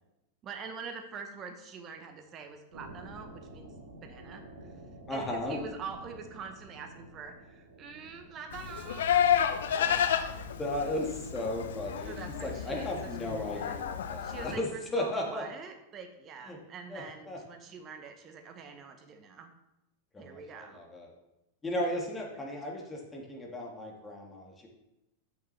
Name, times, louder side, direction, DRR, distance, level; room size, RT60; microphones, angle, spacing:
voice 1, 0.4-3.7 4.0-4.7 5.1-9.3 9.7-10.1 12.1-13.8 14.2-19.5 20.2-20.8 21.8-21.9, right 5 dB, 35° right, 7 dB, 0.9 m, -45 dB
sound 1, 2.7-12.6, right 1 dB, 80° right, 1.6 m, -51 dB
voice 2, 5.1-5.6 10.4-15.4 16.5-16.6 16.9-17.4 20.1-21.1 21.6-24.7, left 1 dB, 15° left, 0 dB, 1.7 m, -35 dB
Livestock farm animals working animals, 8.5-14.6, left 9 dB, 70° left, 0.6 m, -31 dB
8.9 x 6.3 x 3.3 m, 0.91 s
hypercardioid pair, 95°, 0 cm